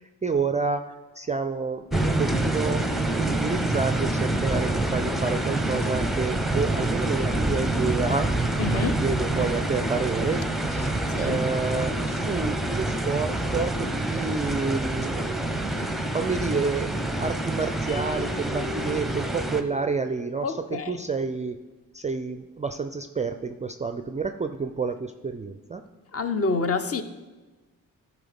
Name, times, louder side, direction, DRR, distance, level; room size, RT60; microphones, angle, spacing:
voice 1, 0.0-2.8 3.1-8.3 8.7-16.9 17.2-21.6 21.9-25.8, right 4 dB, 15° right, 0.4 m, -29 dB
sound 1, 1.9-19.6, right 2 dB, ahead, 0.8 m, -27 dB
voice 2, 8.6-9.0 11.1-11.4 20.4-21.0 26.1-27.0, left 4 dB, 30° left, 0.8 m, -27 dB
sound 2, 17.9-20.3, left 3 dB, 85° left, 1.0 m, -39 dB
13.5 x 4.8 x 3.6 m
hypercardioid pair, 40°, 45 cm